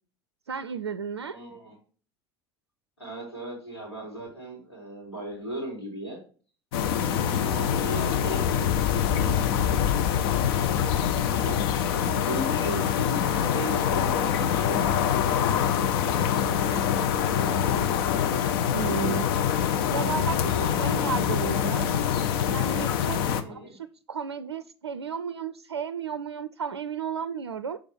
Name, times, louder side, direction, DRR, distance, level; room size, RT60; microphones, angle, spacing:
voice 1, 0.5-1.4 18.7-19.3 19.9-21.9 22.5-23.2 23.5-23.8 24.1-27.8, right 6 dB, 85° right, 0.4 m, -33 dB
voice 2, 1.3-1.8 3.0-6.2 6.9-8.7 9.4-10.0 11.4-17.1 23.2-23.8, right 1 dB, 85° left, 3.8 m, -37 dB
sound 1, 6.7-23.4, left 8 dB, 60° left, 0.7 m, -25 dB
6.9 x 5.0 x 4.3 m
figure-of-eight pair, 70°, 13 cm